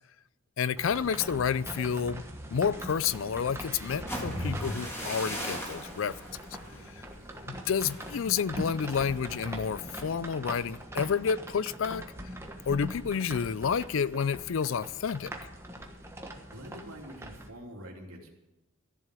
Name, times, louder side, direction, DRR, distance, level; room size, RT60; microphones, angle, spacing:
voice 1, 0.6-2.2 2.5-6.2 7.5-12.0 12.7-15.3, left 6 dB, 65° left, 0.4 m, -30 dB
sound 1, 0.8-17.5, right 1 dB, 10° right, 1.3 m, -42 dB
sound 2, 3.9-11.8 12.1-12.4 12.8-13.2, equal, 10° left, 3.0 m, -40 dB
voice 2, 16.5-18.3, equal, 85° right, 2.8 m, -46 dB
14.0 x 7.3 x 8.4 m
head